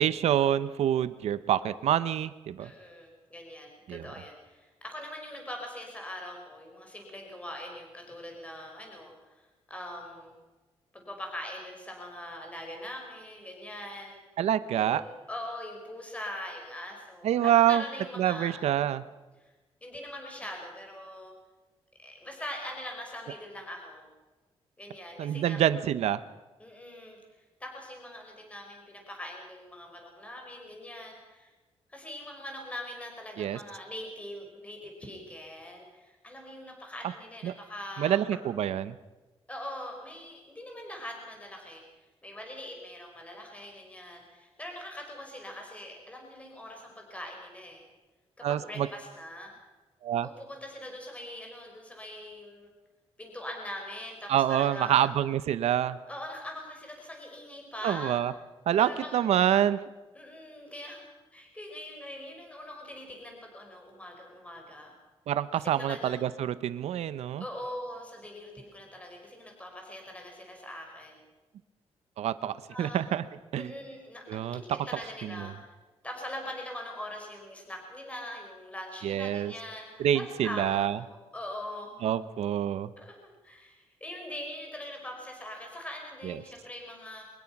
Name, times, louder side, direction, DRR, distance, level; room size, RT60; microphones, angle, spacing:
voice 1, 0.0-2.7 3.9-4.1 14.4-15.0 17.2-17.8 18.2-19.0 25.2-26.2 33.4-33.6 37.4-37.5 38.0-38.9 48.4-48.9 50.0-50.3 54.3-56.0 57.8-58.3 58.7-59.8 65.3-67.4 72.2-73.2 73.5-73.7 74.3-74.6 79.0-79.5 80.0-81.0 82.0-82.9 86.2-86.3, right 10 dB, 85° right, 14 dB, 0.8 m, -26 dB
voice 2, 2.6-10.3 10.9-14.2 14.7-19.0 19.4-19.5 19.8-21.3 22.0-24.1 24.8-25.7 26.6-27.2 27.6-31.5 31.9-38.2 39.5-41.8 42.2-47.8 48.4-49.5 50.2-52.7 53.2-55.1 56.1-58.2 58.8-59.3 60.1-64.9 65.5-66.3 67.4-71.2 72.7-73.0 73.5-75.7 76.0-82.1 83.0-83.2 83.4-87.2, left 1 dB, 10° left, 1 dB, 5.3 m, -42 dB
23.5 x 21.0 x 6.0 m, 1.2 s
cardioid pair, 125°, 11 cm